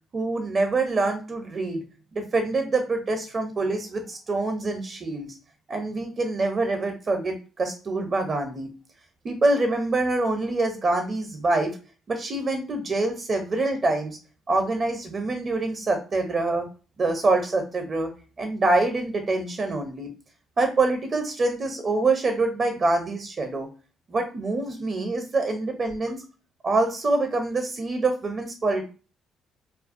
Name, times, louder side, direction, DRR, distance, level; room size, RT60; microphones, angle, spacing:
voice 1, 0.1-1.8 2.1-5.3 5.7-8.7 9.2-11.8 12.1-14.2 14.5-16.7 17.0-18.1 18.4-20.1 20.6-23.7 24.1-26.2 26.6-28.8, right 2 dB, 45° right, 5 dB, 0.6 m, -25 dB
2.4 x 2.2 x 2.5 m, 0.34 s
supercardioid pair, 70°, 0 cm